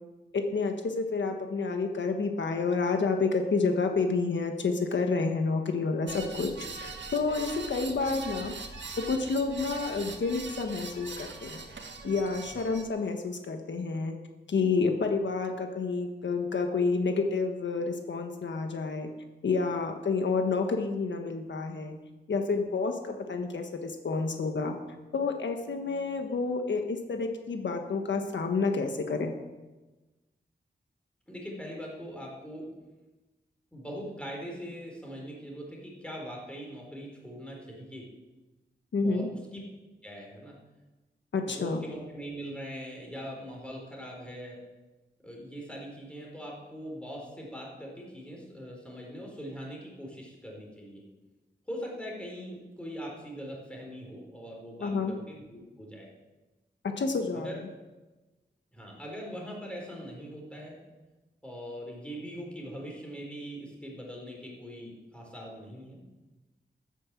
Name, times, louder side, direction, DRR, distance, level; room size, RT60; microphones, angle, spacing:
voice 1, 0.3-6.5 6.8-8.5 9.1-11.6 12.0-14.2 14.5-19.1 19.4-22.0 22.3-24.7 25.1-29.3 38.9-39.3 41.3-41.8 54.8-55.1 56.8-57.5, left 4 dB, 80° left, 5 dB, 1.4 m, -29 dB
sound 1, 6.1-12.8, right 4 dB, 85° right, 1.7 m, -41 dB
voice 2, 31.3-32.7 33.7-38.0 39.0-39.3 40.0-40.6 41.4-44.6 45.2-51.0 51.7-56.1 57.3-57.6 58.7-60.8 61.4-66.0, equal, 5° left, -1 dB, 4.1 m, -41 dB
14.0 x 9.2 x 7.4 m, 1.2 s
wide cardioid pair, 145°, 19 cm